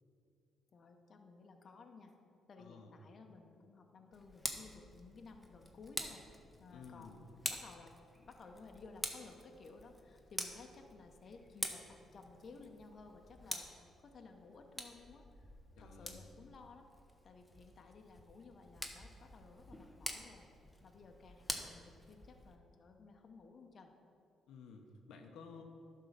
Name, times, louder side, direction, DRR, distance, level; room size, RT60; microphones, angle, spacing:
voice 1, 0.7-2.1 2.5-6.3 6.6-16.9 17.2-23.9, left 4 dB, 50° left, 4 dB, 0.8 m, -56 dB
voice 2, 2.6-2.9 6.7-7.2 15.8-16.2 24.5-25.6, left 5 dB, 85° left, 3 dB, 0.8 m, -54 dB
Tick, 4.1-22.6, left 1 dB, 5° left, 0.9 m, -47 dB
11.0 x 3.8 x 6.6 m, 2.5 s
cardioid pair, 90°, 0 cm